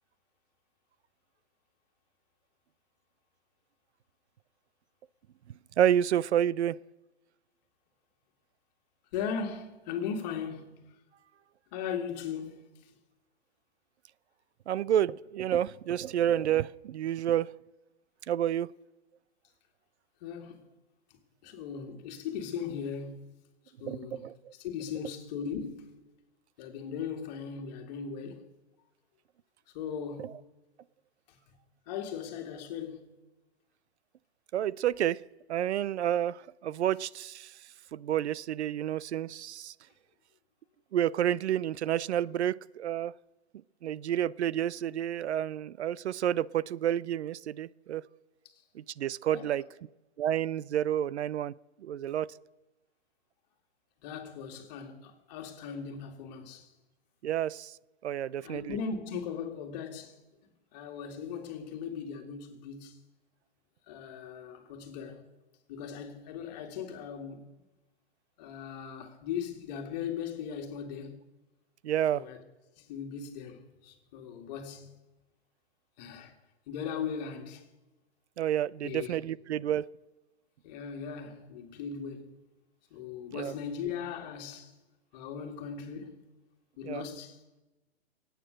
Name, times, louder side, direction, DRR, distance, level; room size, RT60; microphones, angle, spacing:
voice 1, 5.8-6.8 14.7-17.5 18.3-18.7 23.8-24.5 34.5-35.2 35.5-37.5 37.9-39.7 40.9-43.1 43.8-48.0 48.7-49.6 50.2-51.5 51.8-52.3 57.2-57.7 58.0-58.8 71.8-72.2 78.4-79.9 83.3-83.5 86.8-87.0, right 11 dB, 85° right, 0.5 m, -29 dB
voice 2, 9.1-10.8 11.7-12.9 20.2-20.7 21.4-23.3 23.8-26.0 26.6-28.5 29.7-30.4 31.3-31.4 31.9-33.2 49.3-49.6 54.0-56.7 58.4-60.2 60.7-63.0 63.9-65.3 65.7-67.5 68.4-71.2 72.1-72.4 72.8-75.0 76.0-76.3 76.7-77.7 78.8-79.2 80.6-82.4 82.9-84.7 85.1-86.2 86.8-87.4, left 7 dB, 40° left, 2.2 m, -38 dB
23.0 x 9.2 x 6.4 m
hypercardioid pair, 145°, 33 cm